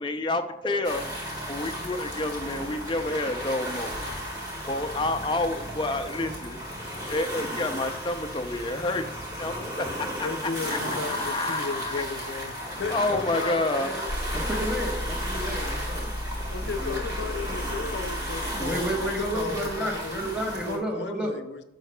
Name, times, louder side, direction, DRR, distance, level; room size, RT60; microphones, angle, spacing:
voice 1, 0.0-4.4 4.7-12.0 12.9-13.9, left 2 dB, 25° left, 7 dB, 0.5 m, -30 dB
sound 1, 0.8-20.8, equal, 20° right, 1.7 m, -34 dB
voice 2, 10.2-14.1 16.4-20.3 20.7-21.6, left 4 dB, 70° left, 8 dB, 0.6 m, -35 dB
sound 2, 14.1-20.2, left 1 dB, 50° right, 1.4 m, -35 dB
voice 3, 14.5-16.1 16.6-17.0 18.6-21.4, equal, 5° right, -2 dB, 1.1 m, -31 dB
10.5 x 6.5 x 2.2 m, 0.89 s
head